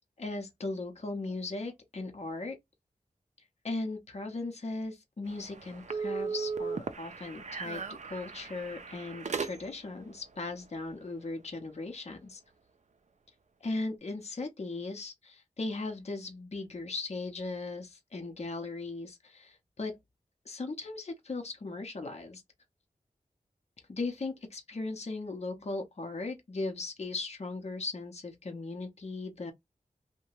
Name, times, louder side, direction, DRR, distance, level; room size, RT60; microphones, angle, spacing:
voice 1, 0.2-2.5 3.6-7.8 8.1-12.4 13.6-20.0 20.4-22.4 23.9-29.5, left 3 dB, 50° left, 0.7 m, -38 dB
sound 1, 5.3-9.9, right 5 dB, 55° right, 0.4 m, -37 dB
2.8 x 2.2 x 2.9 m
wide cardioid pair, 55°, 15 cm